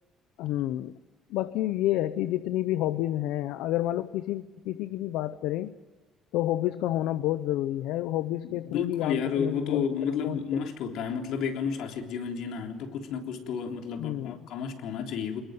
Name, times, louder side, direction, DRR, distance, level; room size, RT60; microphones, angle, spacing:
voice 1, 0.4-1.0 1.3-5.8 6.3-10.7 14.0-14.4, left 14 dB, 85° left, 13 dB, 0.8 m, -29 dB
voice 2, 8.4-15.4, left 6 dB, 70° left, 4 dB, 3.5 m, -31 dB
25.0 x 21.0 x 9.4 m, 1.2 s
cardioid pair, 140°, 0 cm